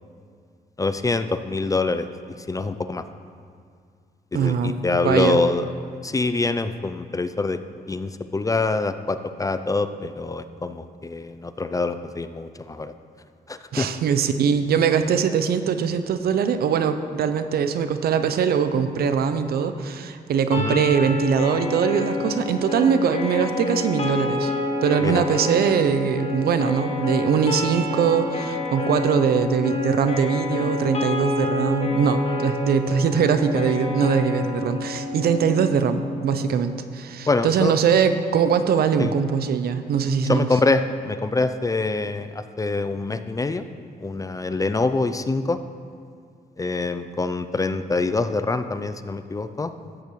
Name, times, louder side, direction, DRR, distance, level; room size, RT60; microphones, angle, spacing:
voice 1, 0.8-2.1 2.5-3.0 4.3-5.7 6.0-7.6 7.9-12.9 13.5-13.9 20.6-20.8 25.0-25.2 37.3-37.7 39.0-39.1 40.2-43.6 44.0-45.6 46.6-49.7, left 3 dB, 20° left, 10 dB, 0.4 m, -25 dB
voice 2, 4.3-5.4 13.7-24.5 24.8-40.5, right 7 dB, 70° right, 10 dB, 0.6 m, -22 dB
sound 1, 20.5-36.6, left 3 dB, 40° left, 1.4 m, -28 dB
13.5 x 9.0 x 3.2 m, 2.3 s
cardioid pair, 85°, 16 cm